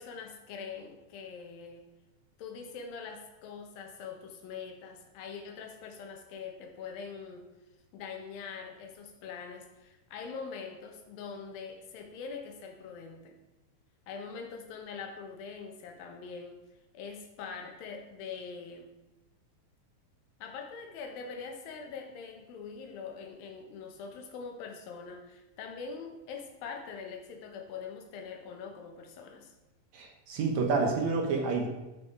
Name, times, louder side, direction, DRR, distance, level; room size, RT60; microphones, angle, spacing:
voice 1, 0.0-1.8 2.4-7.5 7.9-13.4 14.1-16.6 16.9-18.9 20.4-29.5, left 5 dB, 75° left, 3 dB, 3.0 m, -43 dB
voice 2, 29.9-31.7, right 4 dB, 65° right, 2 dB, 1.9 m, -29 dB
14.5 x 4.9 x 4.8 m, 1.0 s
omnidirectional pair, 4.2 m